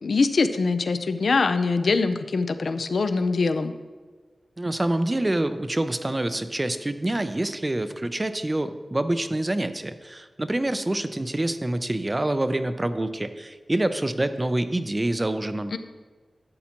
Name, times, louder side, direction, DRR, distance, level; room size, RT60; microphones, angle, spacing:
voice 1, 0.0-3.7 15.7-15.8, left 4 dB, 75° left, 10 dB, 0.5 m, -23 dB
voice 2, 4.6-15.7, right 1 dB, 25° right, 10 dB, 0.5 m, -26 dB
11.5 x 8.2 x 2.9 m, 1.4 s
wide cardioid pair, 110°, 0 cm